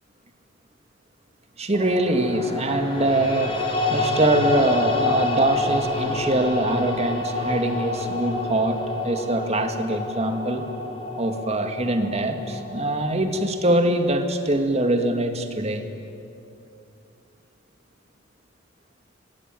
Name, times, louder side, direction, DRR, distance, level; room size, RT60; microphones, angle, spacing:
voice 1, 1.6-3.6 3.9-10.7 11.2-15.9, right 1 dB, 35° right, 6 dB, 2.2 m, -23 dB
sound 1, 1.7-14.0, left 2 dB, 30° left, 3.9 m, -28 dB
26.0 x 21.5 x 9.4 m, 2.5 s
head